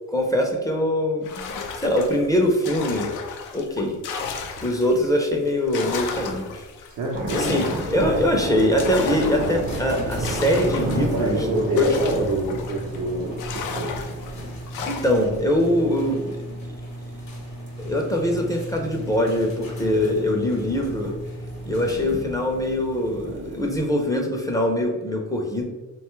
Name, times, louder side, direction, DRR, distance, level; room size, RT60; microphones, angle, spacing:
voice 1, 0.1-1.5 1.8-3.1 3.5-4.0 4.6-6.7 7.3-11.4 11.7-11.9 14.9-16.6 17.8-21.1 21.6-25.7, left 1 dB, 10° left, 1 dB, 0.5 m, -23 dB
sound 1, 1.2-5.1 5.5-13.0 13.4-15.3, left 5 dB, 85° left, 0.5 m, -34 dB
voice 2, 6.9-7.7 11.1-14.0, right 1 dB, 85° right, -3 dB, 0.6 m, -26 dB
sound 2, 7.1-23.9, right 2 dB, 40° right, 0.5 m, -34 dB
sound 3, 9.6-22.4, right 1 dB, 65° left, 0.8 m, -36 dB
2.8 x 2.3 x 3.0 m, 1.2 s
cardioid pair, 90°, 30 cm